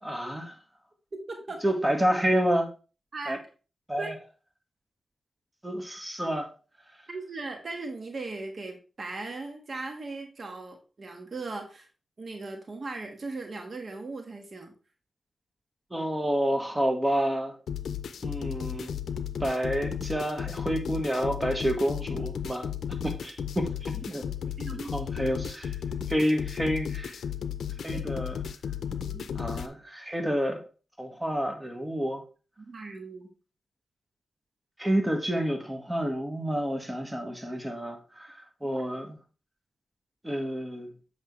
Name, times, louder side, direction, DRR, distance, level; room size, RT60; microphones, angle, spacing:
voice 1, 0.0-0.5 1.6-2.7 3.3-3.4 3.9-4.1 5.6-6.5 15.9-17.5 18.2-19.0 19.4-22.7 23.0-24.2 24.9-25.7 26.1-27.2 27.8-28.4 29.3-30.6 31.0-32.2 34.8-39.2 40.2-40.9, equal, 15° right, 1.6 m, -29 dB
voice 2, 1.3-1.6 3.1-3.4 4.0-4.1 7.1-11.9 12.2-14.7 24.6-24.9 27.9-28.0 29.0-29.3 32.6-33.3 38.6-38.8, right 3 dB, 60° right, 1.5 m, -38 dB
sound 1, 17.7-29.7, left 8 dB, 90° left, 0.5 m, -34 dB
7.8 x 5.5 x 3.2 m
cardioid pair, 50°, 0 cm